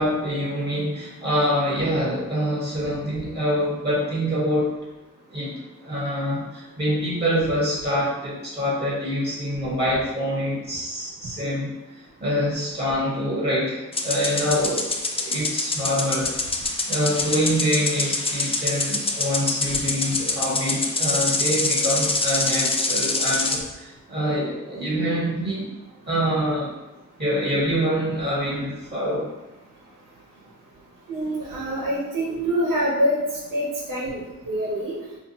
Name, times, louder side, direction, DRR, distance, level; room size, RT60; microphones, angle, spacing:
voice 1, 0.0-4.7 5.3-14.9 15.1-25.7 26.0-26.7 27.2-29.3, equal, 30° right, -6 dB, 1.1 m, -25 dB
sound 1, 13.9-23.6, left 3 dB, 20° left, 0.3 m, -25 dB
voice 2, 31.1-33.2 33.5-34.2 34.4-35.0, equal, 80° right, -5 dB, 1.2 m, -25 dB
2.8 x 2.3 x 3.8 m, 1.0 s
cardioid pair, 75°, 32 cm